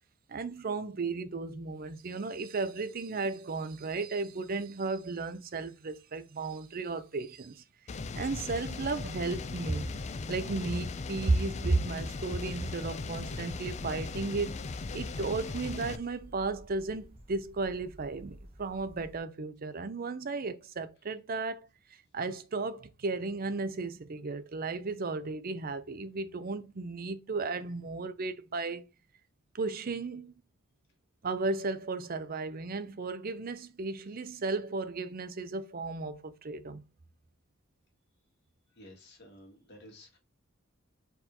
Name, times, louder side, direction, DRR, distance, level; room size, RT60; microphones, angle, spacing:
voice 1, 0.3-7.6 8.1-9.9 10.3-14.6 14.9-21.7 22.1-28.9 29.5-30.3 31.2-36.8, right 3 dB, 45° right, 0.6 m, -34 dB
sound 1, 7.9-16.0, left 3 dB, 35° left, 0.4 m, -38 dB
sound 2, 13.0-19.2, equal, 30° right, 1.0 m, -52 dB
voice 2, 38.8-40.2, left 1 dB, 55° left, 2.0 m, -53 dB
4.6 x 3.9 x 2.8 m
head